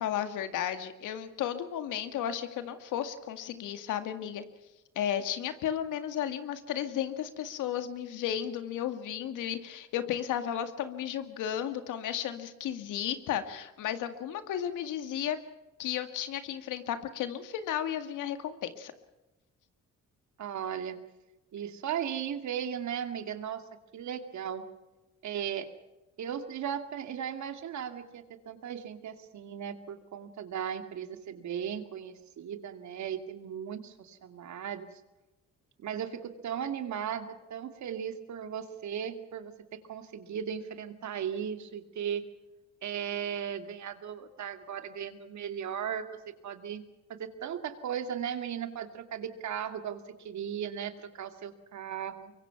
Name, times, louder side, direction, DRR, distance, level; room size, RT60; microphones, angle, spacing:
voice 1, 0.0-4.4 5.0-15.4 15.8-18.9, left 10 dB, 85° left, 9 dB, 2.1 m, -34 dB
voice 2, 20.4-21.0 21.5-23.6 23.9-24.6 25.2-25.7 26.2-34.9 35.8-42.2 42.8-46.1 46.4-46.8 47.1-52.3, right 8 dB, 70° right, 8 dB, 2.3 m, -37 dB
24.0 x 23.0 x 5.9 m, 1.1 s
cardioid pair, 90°, 30 cm